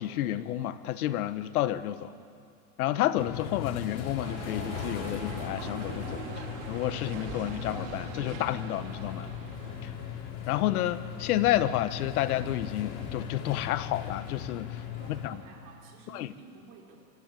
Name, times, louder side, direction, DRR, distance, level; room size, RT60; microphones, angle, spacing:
voice 1, 0.0-2.1 2.8-6.3 6.7-9.3 9.8-9.9 10.5-14.8 15.1-15.4 16.1-16.3, left 13 dB, 90° left, 13 dB, 1.1 m, -30 dB
sound 1, 3.2-15.3, left 8 dB, 70° left, 3.7 m, -38 dB
sound 2, 4.2-10.2, right 6 dB, 55° right, 2.9 m, -42 dB
voice 2, 14.8-17.0, right 4 dB, 35° right, -1 dB, 4.0 m, -52 dB
24.5 x 13.5 x 9.2 m, 2.3 s
supercardioid pair, 170°, 43 cm